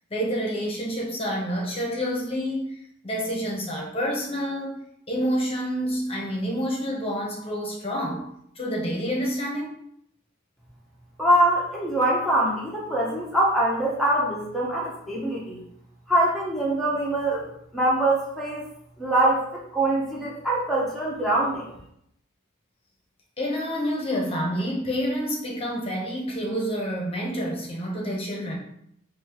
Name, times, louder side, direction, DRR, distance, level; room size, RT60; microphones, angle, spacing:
voice 1, 0.1-2.8 3.0-4.8 5.1-8.3 8.6-9.7 23.4-28.6, equal, 30° left, -2 dB, 0.9 m, -28 dB
voice 2, 11.2-15.6 16.1-17.4 17.7-18.6 19.0-21.7, right 1 dB, ahead, -6 dB, 0.8 m, -23 dB
5.2 x 2.7 x 3.0 m, 0.73 s
head